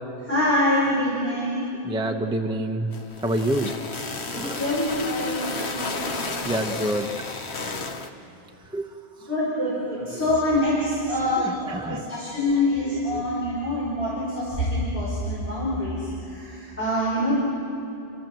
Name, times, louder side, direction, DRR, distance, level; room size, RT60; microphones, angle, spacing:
voice 1, 0.2-1.6 4.6-6.1 9.3-17.4, left 1 dB, 10° left, -8 dB, 4.7 m, -25 dB
voice 2, 1.8-2.9 3.2-3.8 4.3-4.7 5.6-5.9 6.4-7.1 8.7-8.9 9.2-9.3 10.0-10.3 11.2-12.4 13.1-13.3, right 1 dB, 5° right, 3 dB, 0.8 m, -28 dB
sound 1, 2.9-8.1, left 3 dB, 85° left, 1.5 m, -32 dB
30.0 x 13.0 x 7.7 m, 2.7 s
omnidirectional pair, 1.1 m